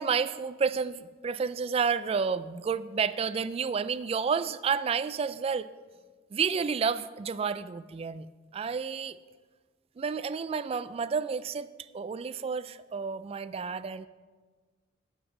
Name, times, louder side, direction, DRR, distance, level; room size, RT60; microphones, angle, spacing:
voice 1, 0.0-5.7 6.3-8.3 8.5-9.2 10.0-14.1, right 6 dB, 30° right, 14 dB, 0.3 m, -30 dB
13.0 x 8.0 x 3.9 m, 1.4 s
head